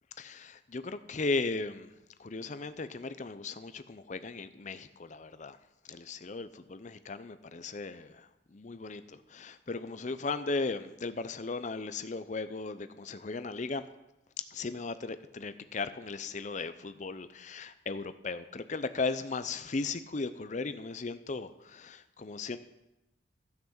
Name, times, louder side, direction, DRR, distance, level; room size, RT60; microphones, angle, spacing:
voice 1, 0.2-1.9 2.2-5.6 5.9-8.1 8.5-9.0 9.3-13.8 14.5-22.6, left 3 dB, 40° left, 12 dB, 0.5 m, -36 dB
13.0 x 5.9 x 7.1 m, 0.94 s
head